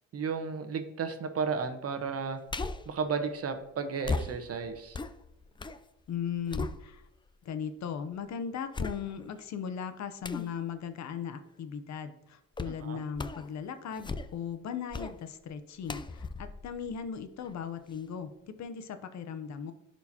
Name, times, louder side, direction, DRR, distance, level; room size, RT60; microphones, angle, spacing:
voice 1, 0.1-2.4 2.9-5.0 12.9-13.0, right 5 dB, 50° right, 7 dB, 1.1 m, -33 dB
sound 1, 2.5-3.0 4.0-5.8 6.2-7.3 7.8-7.9 8.7-9.4 10.2-10.5 12.6-12.8 13.1-13.5 13.9-14.5 14.9-15.2 15.9-17.5 17.9-18.0, left 3 dB, 15° left, 0.4 m, -37 dB
voice 2, 6.1-7.0 7.4-19.7, left 7 dB, 65° left, 9 dB, 0.8 m, -38 dB
11.0 x 4.5 x 2.8 m, 0.96 s
cardioid pair, 90°, 30 cm